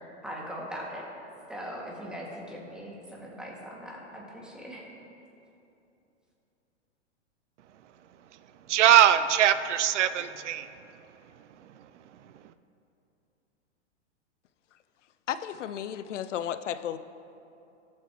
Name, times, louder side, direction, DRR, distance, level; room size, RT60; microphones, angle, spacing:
voice 1, 0.2-1.1 1.5-4.8, equal, ahead, -4 dB, 2.1 m, -40 dB
voice 2, 8.7-12.5, right 10 dB, 75° right, 13 dB, 0.5 m, -24 dB
voice 3, 15.3-17.0, left 10 dB, 85° left, 13 dB, 0.5 m, -33 dB
19.0 x 7.5 x 3.0 m, 2.8 s
hypercardioid pair, 115°, 36 cm